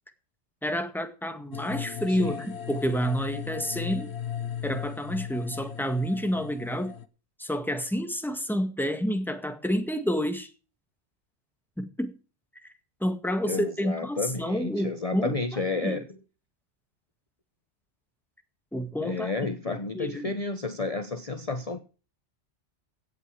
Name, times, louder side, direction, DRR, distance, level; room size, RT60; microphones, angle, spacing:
voice 1, 0.6-4.1 4.6-6.9 7.4-10.5 11.8-12.1 13.0-16.1 18.7-19.3 19.7-20.4, equal, ahead, 1.8 m, -29 dB
sound 1, 1.5-7.1, left 9 dB, 65° left, 1.4 m, -36 dB
voice 2, 2.1-2.4 13.5-16.1 19.0-21.8, left 3 dB, 30° left, 1.1 m, -31 dB
16.5 x 8.8 x 4.9 m
omnidirectional pair, 1.2 m